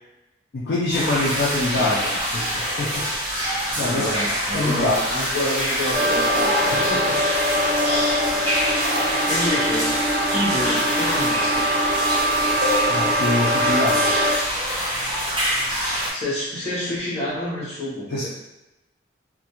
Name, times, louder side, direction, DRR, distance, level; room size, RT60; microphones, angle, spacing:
voice 1, 0.5-2.0 2.3-3.1 3.8-4.1 4.5-5.0 6.7-7.5 12.9-14.1 18.1-18.3, left 2 dB, 60° left, -7 dB, 0.4 m, -25 dB
sound 1, 0.9-16.1, equal, 25° right, 0.8 m, -25 dB
voice 2, 1.7-2.3 3.7-7.1 7.8-8.5 9.3-10.0 10.3-11.7 16.1-18.3, left 1 dB, 35° left, -7 dB, 0.9 m, -28 dB
sound 2, 5.9-14.3, equal, 65° right, 0.8 m, -23 dB
2.4 x 2.1 x 2.9 m, 0.96 s
head